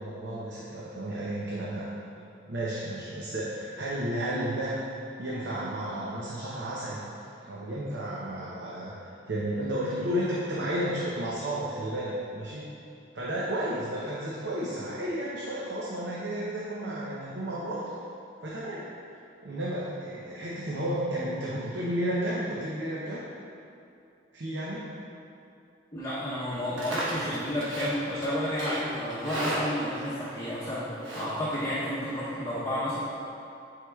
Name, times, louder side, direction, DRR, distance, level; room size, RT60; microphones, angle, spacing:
voice 1, 0.0-1.9 2.5-4.8 5.2-7.0 7.4-8.9 9.3-12.7 13.1-17.9 18.4-18.8 19.4-23.2 24.3-24.9, right 1 dB, 70° right, -6 dB, 0.7 m, -32 dB
voice 2, 25.9-30.9 31.2-33.0, equal, 15° left, -10 dB, 0.8 m, -31 dB
Livestock farm animals working animals, 26.5-32.2, right 1 dB, 90° right, 1.1 m, -36 dB
9.3 x 4.7 x 2.3 m, 2.6 s
head